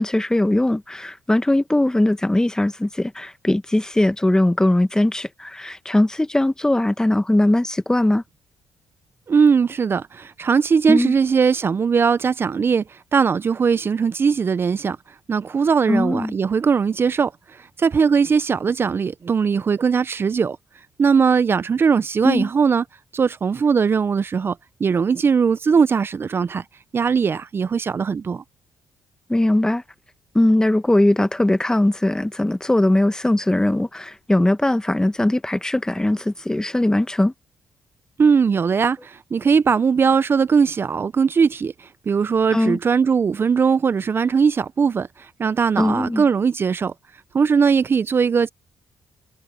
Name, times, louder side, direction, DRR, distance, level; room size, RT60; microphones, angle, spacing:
voice 1, 0.0-8.2 10.9-11.1 15.9-16.3 22.2-22.5 29.3-29.8 30.3-37.3 42.5-42.8 45.8-46.2, left 1 dB, 10° left, 1.4 m, -20 dB
voice 2, 9.3-15.0 15.3-20.6 21.0-22.8 23.1-26.6 26.9-28.4 38.2-46.9 47.3-48.5, right 6 dB, 45° right, 0.6 m, -19 dB
supercardioid pair, 60°, 6 cm